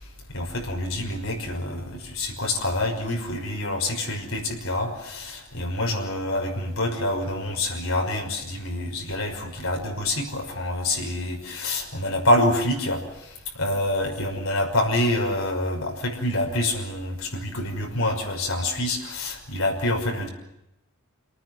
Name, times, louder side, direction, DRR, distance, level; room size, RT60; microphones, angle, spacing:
voice 1, 0.3-13.0 13.6-20.3, left 1 dB, 75° left, 1 dB, 5.9 m, -26 dB
28.5 x 19.0 x 7.9 m, 0.88 s
head